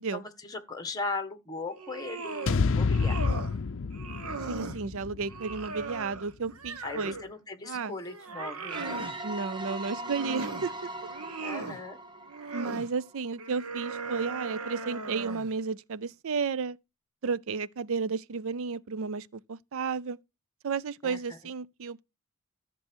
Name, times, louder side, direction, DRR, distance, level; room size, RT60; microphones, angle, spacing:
voice 1, 0.1-3.2 6.8-9.0 11.4-12.0 21.0-21.2, left 3 dB, 15° left, 1.5 m, -38 dB
sound 1, 1.7-2.6 2.9-3.6 3.9-4.8 5.3-7.3 7.7-9.1 9.8-10.7 11.1-11.8 12.3-12.9 13.4-15.5, right 3 dB, 80° right, 1.3 m, -38 dB
sound 2, 2.5-6.7, left 4 dB, 60° left, 0.5 m, -30 dB
voice 2, 4.5-7.1 7.6-8.0 9.2-10.7 12.5-16.8 17.2-20.2 20.6-22.0, right 5 dB, 65° right, 0.5 m, -33 dB
sound 3, 8.7-13.3, right 2 dB, 20° right, 1.0 m, -40 dB
14.0 x 6.9 x 4.5 m
head